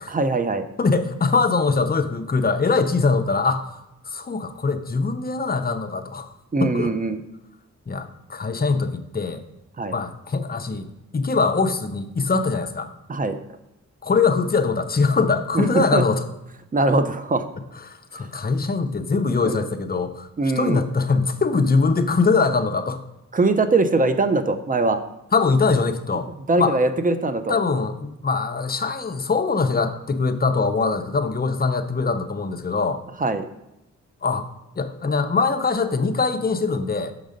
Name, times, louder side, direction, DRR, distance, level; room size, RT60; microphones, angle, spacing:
voice 1, 0.1-0.6 6.5-7.2 9.8-10.0 13.1-13.4 15.5-16.0 16.7-17.5 19.4-19.6 20.4-20.8 23.3-25.0 26.1-26.2 26.5-27.6 33.2-33.4, right 3 dB, 25° right, 10 dB, 0.6 m, -21 dB
voice 2, 0.8-3.7 4.0-6.3 6.6-6.9 7.9-9.4 9.9-10.9 11.1-12.9 14.0-16.2 17.9-20.3 20.6-23.0 25.3-26.3 26.6-26.8 27.5-33.0 34.2-34.5 34.8-37.1, left 4 dB, 30° left, 7 dB, 0.6 m, -22 dB
6.5 x 3.9 x 5.1 m, 0.90 s
cardioid pair, 70°, 31 cm